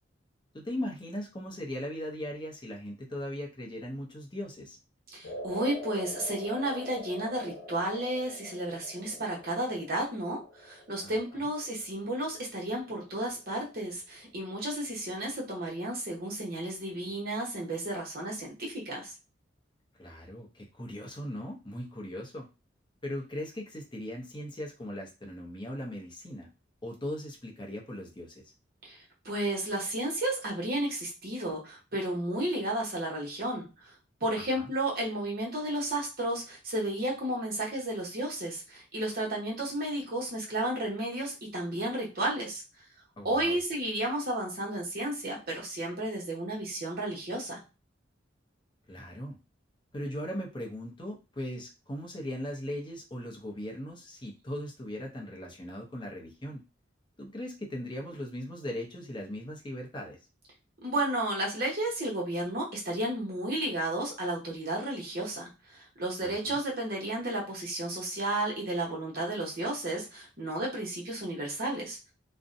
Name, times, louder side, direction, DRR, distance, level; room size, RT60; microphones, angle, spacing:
voice 1, 0.5-4.8 11.0-11.5 20.0-22.5 23.0-26.5 26.8-28.4 34.5-34.7 43.2-43.6 48.9-49.4 49.9-56.6 57.2-60.2 66.2-66.6, left 1 dB, 25° left, -1 dB, 0.6 m, -39 dB
voice 2, 5.1-19.1 28.8-29.0 29.2-33.9 34.2-42.6 43.2-47.6 60.8-72.0, right 1 dB, 50° right, -3 dB, 0.9 m, -32 dB
sound 1, 5.2-13.6, left 1 dB, 75° left, 0.7 m, -45 dB
2.5 x 2.1 x 2.5 m, 0.30 s
head